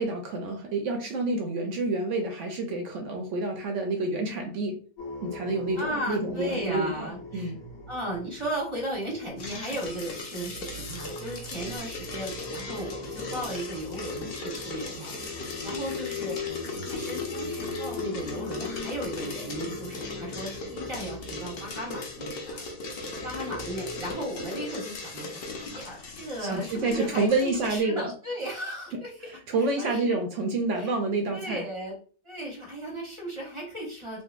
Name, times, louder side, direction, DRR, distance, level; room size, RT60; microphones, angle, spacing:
voice 1, 0.0-4.8 5.2-7.6 26.4-28.1 28.9-31.6, right 3 dB, 70° right, 3 dB, 0.7 m, -28 dB
sound 1, 5.0-10.1 10.3-24.1, left 3 dB, 55° left, 1.5 m, -39 dB
voice 2, 5.8-7.5 7.9-16.4 16.7-23.0 23.2-25.4 25.7-29.1 29.6-30.2 30.7-31.0 31.3-32.0 32.2-34.2, right 1 dB, 35° right, -3 dB, 0.5 m, -36 dB
sound 2, 9.4-27.8, left 3 dB, 75° left, 0.5 m, -39 dB
3.8 x 2.1 x 2.3 m, 0.41 s
omnidirectional pair, 1.8 m